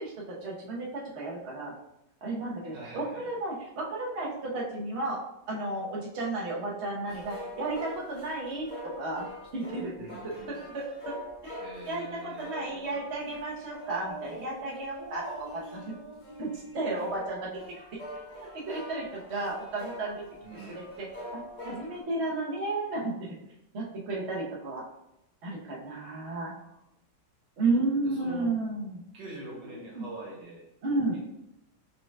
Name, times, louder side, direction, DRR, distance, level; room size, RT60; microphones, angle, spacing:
voice 1, 0.0-1.7 2.2-5.2 5.5-8.7 9.0-9.9 10.5-11.1 11.4-16.0 16.4-17.6 18.5-20.3 20.7-23.3 23.7-24.8 25.4-26.5 27.6-29.0 29.9-30.1 30.8-31.2, right 2 dB, 45° right, -4 dB, 1.1 m, -33 dB
voice 2, 2.7-3.2 10.0-10.7 11.6-13.1 20.4-20.8 26.6-26.8 28.0-28.5 29.1-30.6 31.1-31.2, right 2 dB, 85° right, -3 dB, 2.0 m, -44 dB
sound 1, 7.1-22.0, left 1 dB, 35° left, 0.8 m, -44 dB
4.8 x 4.8 x 2.3 m, 0.84 s
omnidirectional pair, 1.9 m